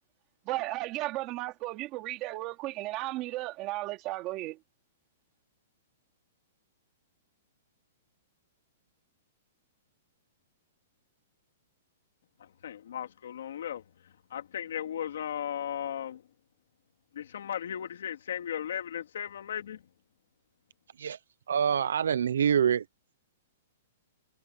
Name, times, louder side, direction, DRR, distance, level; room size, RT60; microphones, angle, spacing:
voice 1, 0.5-4.6, right 18 dB, 25° right, 2.4 m, -34 dB
voice 2, 12.4-16.2 17.1-19.8, left 9 dB, 65° left, 2.7 m, -36 dB
voice 3, 21.5-22.8, right 8 dB, 90° right, 0.6 m, -25 dB
hypercardioid pair, 175°, 0 cm